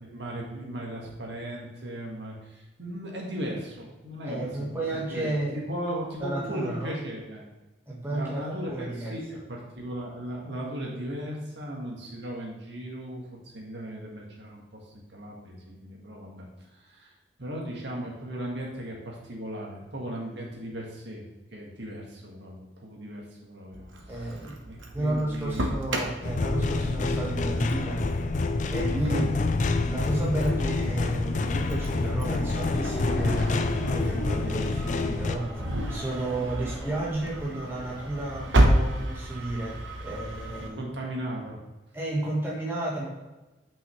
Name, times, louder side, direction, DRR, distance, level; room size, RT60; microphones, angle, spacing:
voice 1, 0.0-4.7 5.1-7.4 8.1-17.1 17.4-21.2 21.5-25.8 29.0-29.3 33.1-33.4 40.6-41.6, right 1 dB, 65° right, -2 dB, 1.7 m, -37 dB
voice 2, 4.2-5.6 6.2-7.0 7.9-9.1 24.1-24.6 24.9-28.1 28.7-29.2 29.6-33.4 33.8-35.5 35.9-40.8 41.9-43.1, right 2 dB, 10° right, -5 dB, 1.5 m, -32 dB
Engine starting, 23.7-40.7, right 1 dB, 85° right, 1.0 m, -32 dB
sound 1, 26.2-35.4, left 3 dB, 40° left, 0.4 m, -27 dB
sound 2, 30.6-38.5, equal, 5° left, 1.8 m, -39 dB
9.0 x 5.5 x 3.2 m, 1.1 s
head